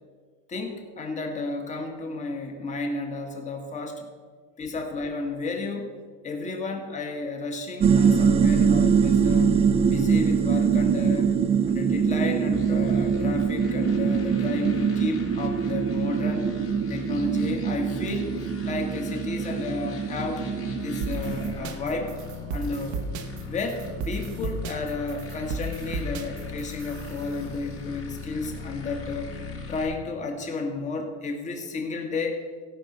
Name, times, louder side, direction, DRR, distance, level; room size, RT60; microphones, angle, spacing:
voice 1, 0.5-4.0 4.6-5.9 6.2-9.5 9.9-11.3 11.7-16.5 16.9-18.3 18.6-20.4 20.8-22.1 22.5-23.1 23.5-29.3 29.7-32.4, left 3 dB, 25° left, 3 dB, 1.9 m, -32 dB
sound 1, 7.8-21.6, right 6 dB, 20° right, 0.5 m, -23 dB
sound 2, 12.5-29.9, left 4 dB, 45° left, 3.2 m, -38 dB
sound 3, 21.0-27.4, right 4 dB, 70° right, 1.1 m, -35 dB
16.5 x 5.6 x 6.7 m, 1.5 s
cardioid pair, 140°, 30 cm